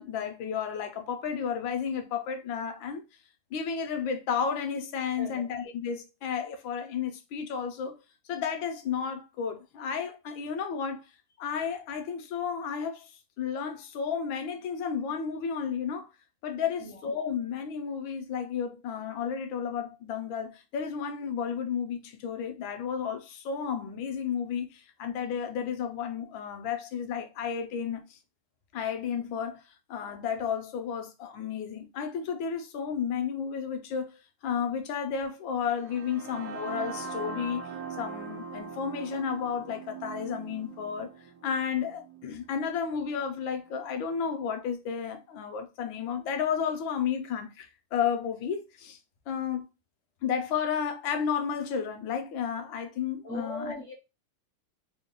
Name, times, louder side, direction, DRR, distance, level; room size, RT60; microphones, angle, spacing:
voice 1, 0.0-3.0 3.5-8.0 8.3-11.0 11.4-13.1 13.4-16.1 16.4-28.2 28.7-29.6 29.9-34.1 34.4-37.6 38.0-41.1 41.4-49.0 49.3-49.7 50.2-53.7, left 7 dB, 75° left, 1.3 m, -32 dB
voice 2, 5.2-5.5 16.8-17.0 53.2-53.9, equal, 50° left, 0.9 m, -38 dB
sound 1, 35.7-43.6, right 4 dB, 75° right, 1.2 m, -41 dB
3.5 x 2.2 x 3.6 m
omnidirectional pair, 2.3 m